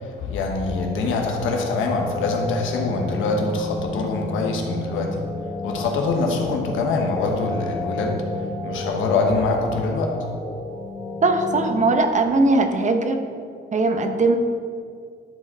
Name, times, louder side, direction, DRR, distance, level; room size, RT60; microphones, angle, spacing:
voice 1, 0.2-5.2 5.6-8.2 8.6-10.2, left 3 dB, 85° left, 1 dB, 1.2 m, -24 dB
sound 1, 0.6-12.0, left 2 dB, 20° left, 0.9 m, -32 dB
voice 2, 11.2-13.2 13.7-14.4, right 2 dB, 40° right, 6 dB, 0.8 m, -19 dB
10.5 x 4.4 x 4.3 m, 2.3 s
cardioid pair, 90°, 20 cm